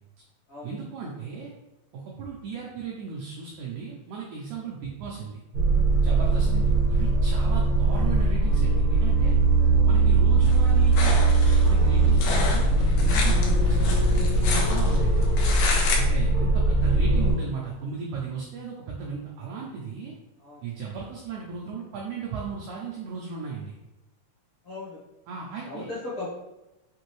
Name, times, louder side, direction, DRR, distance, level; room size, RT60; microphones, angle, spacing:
voice 1, 0.6-1.5 1.9-5.4 6.0-9.4 9.8-11.2 11.6-15.2 15.9-20.1 20.6-23.7 25.3-25.9, right 5 dB, 85° right, -3 dB, 1.7 m, -36 dB
sound 1, 5.5-17.3, right 2 dB, 65° right, 1.4 m, -21 dB
sound 2, 10.5-16.0, left 4 dB, 80° left, 1.9 m, -31 dB
voice 2, 24.6-25.0 25.6-26.3, left 2 dB, 55° left, -10 dB, 1.6 m, -37 dB
5.8 x 2.6 x 3.0 m, 0.97 s
omnidirectional pair, 4.1 m